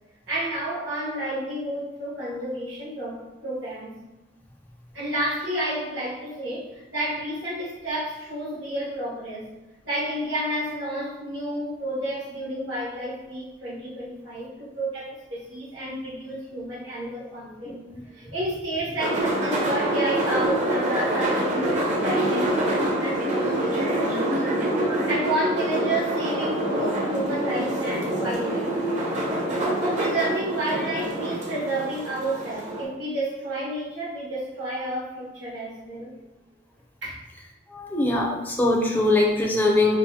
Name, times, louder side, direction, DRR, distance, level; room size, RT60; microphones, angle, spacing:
voice 1, 0.3-3.9 4.9-9.5 9.8-17.7 18.0-24.1 25.0-28.8 29.8-36.1 37.0-37.1, right 1 dB, 75° right, -7 dB, 1.4 m, -30 dB
sound 1, 19.0-32.8, right 1 dB, 40° right, 0.7 m, -26 dB
voice 2, 37.7-40.0, left 2 dB, 10° left, -2 dB, 0.5 m, -22 dB
5.4 x 2.0 x 2.7 m, 1.0 s
head